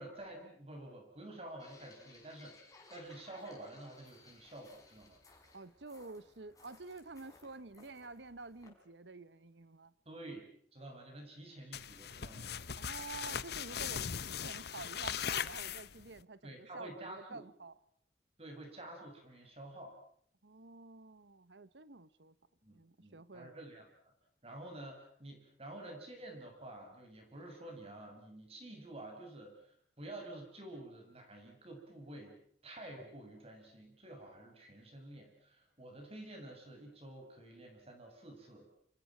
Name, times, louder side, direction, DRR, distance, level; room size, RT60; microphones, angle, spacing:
voice 1, 0.0-5.2 10.0-10.4 10.7-12.5 16.4-17.4 18.4-20.0 22.6-23.8 24.4-32.4 32.6-38.7, right 1 dB, 35° right, 7.8 m, -50 dB
sound 1, 1.6-8.7, left 3 dB, 20° left, 6.2 m, -61 dB
voice 2, 5.5-9.9 12.8-17.8 20.4-22.3 22.7-23.6, right 3 dB, 75° right, 1.1 m, -50 dB
sound 2, 11.7-16.2, left 8 dB, 65° left, 1.0 m, -39 dB
29.0 x 27.0 x 6.2 m
head